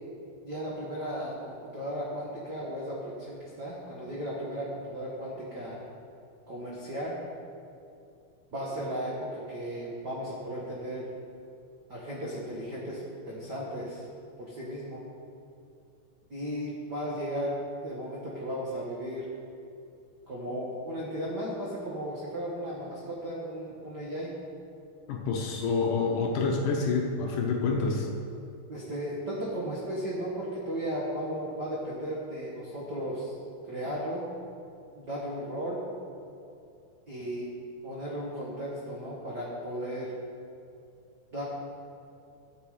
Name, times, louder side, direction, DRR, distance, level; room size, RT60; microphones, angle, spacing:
voice 1, 0.4-5.8 6.5-7.2 8.5-11.1 11.9-13.0 13.3-14.0 14.4-15.0 16.3-17.5 17.8-19.3 20.3-24.3 28.7-33.3 33.7-34.2 34.9-35.8 37.1-37.5 37.8-40.1 41.3-41.4, equal, 85° right, -6 dB, 0.9 m, -35 dB
voice 2, 25.1-28.1, left 4 dB, 70° left, 0 dB, 2.2 m, -27 dB
13.0 x 8.0 x 4.9 m, 2.6 s
omnidirectional pair, 4.4 m